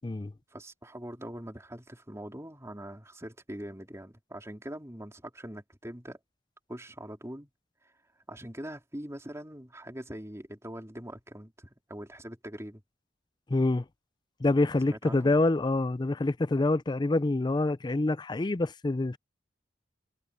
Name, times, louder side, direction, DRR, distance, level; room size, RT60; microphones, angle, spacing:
voice 1, 0.5-6.2 6.7-7.5 8.3-12.8 14.9-15.3, right 1 dB, 15° right, 3.9 m, -42 dB
voice 2, 13.5-13.8 14.4-19.2, left 2 dB, 25° left, 0.4 m, -26 dB
head